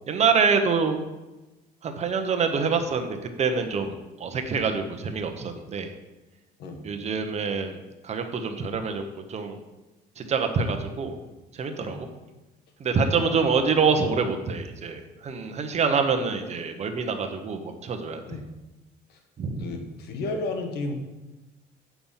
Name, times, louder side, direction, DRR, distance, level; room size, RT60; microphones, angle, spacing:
voice 1, 0.1-1.0 1.8-5.9 6.8-7.8 8.0-9.0 9.3-9.6 10.2-11.2 11.6-12.1 12.8-18.2 19.4-19.7, right 5 dB, 40° right, 5 dB, 1.1 m, -26 dB
voice 2, 19.6-21.0, left 3 dB, 70° left, 4 dB, 1.5 m, -33 dB
8.6 x 6.0 x 5.7 m, 1.1 s
cardioid pair, 115°, 17 cm